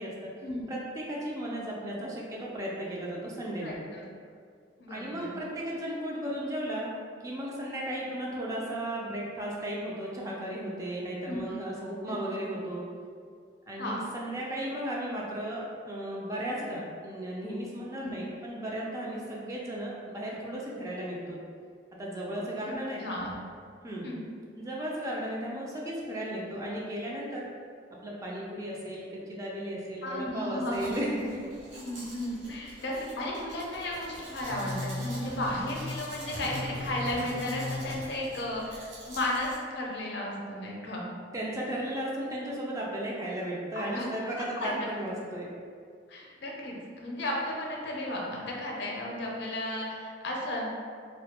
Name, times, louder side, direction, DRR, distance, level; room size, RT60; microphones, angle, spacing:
voice 1, 0.0-0.3 0.7-3.7 4.9-6.9 7.2-12.9 13.7-21.4 22.0-23.0 23.8-24.1 24.6-27.5 28.0-31.5 41.3-45.5, right 1 dB, 20° right, -4 dB, 0.3 m, -35 dB
voice 2, 3.6-4.0 4.8-5.4 11.3-11.4 13.8-14.0 18.0-18.1 22.7-23.4 24.0-24.3 30.0-30.9 31.8-41.1 43.7-44.1 44.3-44.9 46.1-50.7, left 1 dB, 65° left, -2 dB, 0.4 m, -34 dB
Domestic sounds home sounds, 30.7-39.6, right 1 dB, 85° right, 0.6 m, -47 dB
sound 1, 34.4-38.0, left 2 dB, 60° right, 1.0 m, -37 dB
2.2 x 2.1 x 2.8 m, 2.1 s
head